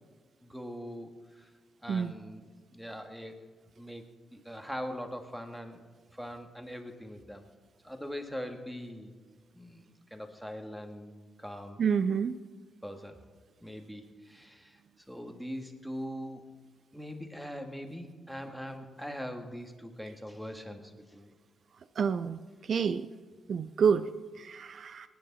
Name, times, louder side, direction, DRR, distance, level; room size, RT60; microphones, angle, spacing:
voice 1, 0.4-1.1 1.4-1.5 1.8-3.4 3.8-4.0 4.3-5.8 6.1-7.4 7.8-9.1 9.5-11.1 11.4-11.8 12.8-13.2 13.6-14.8 15.1-16.4 16.9-21.3, equal, ahead, 5 dB, 2.0 m, -42 dB
voice 2, 11.8-12.3 22.0-23.1 23.5-25.1, right 6 dB, 60° right, 13 dB, 0.5 m, -29 dB
19.0 x 10.5 x 4.2 m, 1.5 s
supercardioid pair, 55°, 0 cm